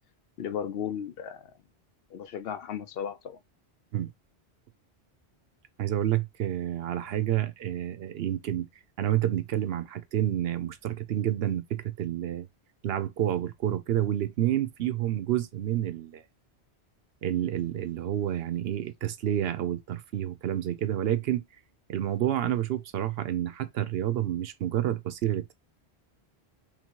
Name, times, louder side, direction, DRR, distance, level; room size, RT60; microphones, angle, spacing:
voice 1, 0.4-1.5 2.1-3.4, left 8 dB, 70° left, 0.7 m, -35 dB
voice 2, 5.8-8.7 9.0-12.5 12.8-16.2 17.2-21.4 21.9-25.5, right 12 dB, 70° right, 0.8 m, -29 dB
3.1 x 2.8 x 4.4 m
omnidirectional pair, 1.1 m